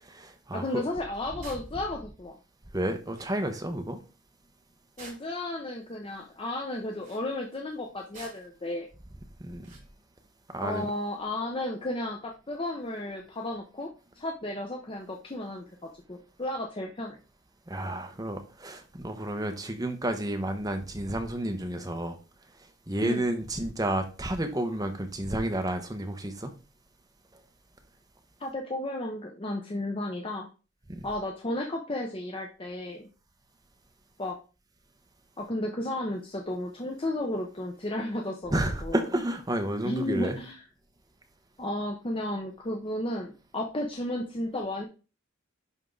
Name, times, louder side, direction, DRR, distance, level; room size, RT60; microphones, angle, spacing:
voice 1, 0.0-0.8 2.7-4.0 9.4-9.6 10.5-10.8 17.7-22.2 22.9-26.5 30.9-31.1 38.5-40.4, right 1 dB, 20° right, 1.0 m, -31 dB
voice 2, 0.5-2.4 5.0-8.9 10.6-13.9 14.2-15.6 16.1-17.2 23.0-23.3 28.4-30.5 31.0-33.1 34.2-34.4 35.4-39.0 39.8-40.6 41.6-44.8, left 1 dB, 25° left, 0.8 m, -33 dB
sound 1, 1.4-1.7 2.8-2.9 3.1-3.3 5.0-5.5 6.9-7.3 8.1-8.6 9.6-9.9, right 3 dB, 40° right, 2.9 m, -48 dB
11.0 x 3.7 x 3.8 m
head